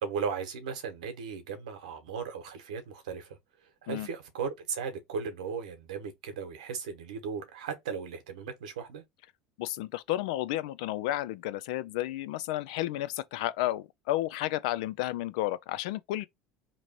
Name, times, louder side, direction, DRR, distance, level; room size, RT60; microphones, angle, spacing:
voice 1, 0.0-3.4 3.8-9.0, right 6 dB, 90° right, 1.1 m, -36 dB
voice 2, 9.6-16.2, left 15 dB, 75° left, 0.4 m, -32 dB
3.0 x 2.6 x 4.3 m
hypercardioid pair, 90°, 4 cm